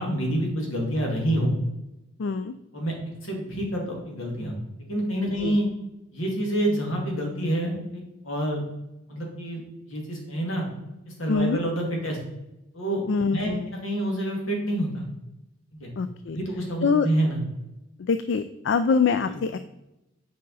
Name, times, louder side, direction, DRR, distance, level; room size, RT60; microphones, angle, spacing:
voice 1, 0.0-1.5 2.7-2.9 3.2-4.6 4.9-5.7 6.1-8.6 9.1-9.6 9.9-10.7 11.1-12.2 12.7-13.0 13.3-13.5 13.8-15.1 15.7-15.9 16.3-17.4 19.2-19.4, right 1 dB, 80° left, 0 dB, 2.2 m, -27 dB
voice 2, 2.2-2.5 5.4-5.6 11.3-11.6 13.1-13.7 16.0-16.4 16.8-17.1 18.0-19.6, left 5 dB, 60° left, 11 dB, 0.4 m, -24 dB
7.8 x 5.1 x 4.0 m, 0.93 s
head